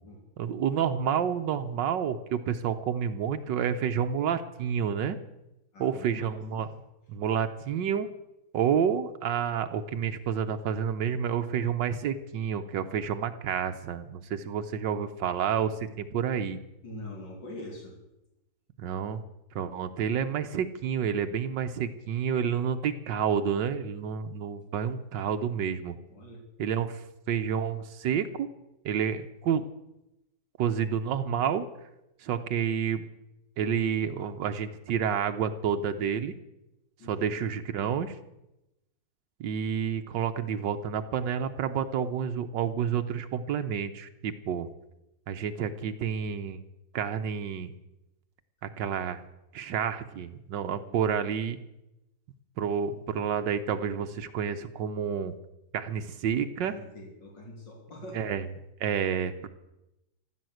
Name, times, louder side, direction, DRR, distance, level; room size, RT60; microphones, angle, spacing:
voice 1, 0.4-5.2 5.8-6.7 7.1-8.1 8.5-16.6 18.8-19.2 19.5-25.9 26.6-28.5 28.8-29.7 30.6-31.7 32.2-33.0 33.6-36.3 37.0-38.2 39.4-44.7 45.3-46.6 46.9-47.7 48.6-49.2 49.5-51.6 52.6-55.3 55.7-56.7 58.1-58.5 58.8-59.5, right 8 dB, 85° right, 8 dB, 1.6 m, -29 dB
voice 2, 5.7-6.4 16.8-18.0 26.1-26.4 37.0-37.3 50.9-51.1 56.6-58.2, left 1 dB, 80° left, 0 dB, 4.0 m, -44 dB
15.0 x 11.5 x 7.8 m, 0.91 s
omnidirectional pair, 1.9 m